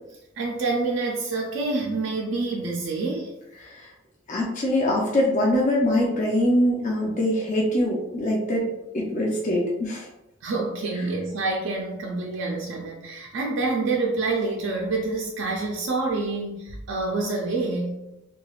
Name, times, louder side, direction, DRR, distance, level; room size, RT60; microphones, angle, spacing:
voice 1, 0.4-3.3 10.4-18.0, right 3 dB, 60° right, -1 dB, 0.4 m, -27 dB
voice 2, 4.3-8.7 8.9-10.1, left 1 dB, 35° left, -3 dB, 0.4 m, -23 dB
3.1 x 2.3 x 2.3 m, 0.92 s
head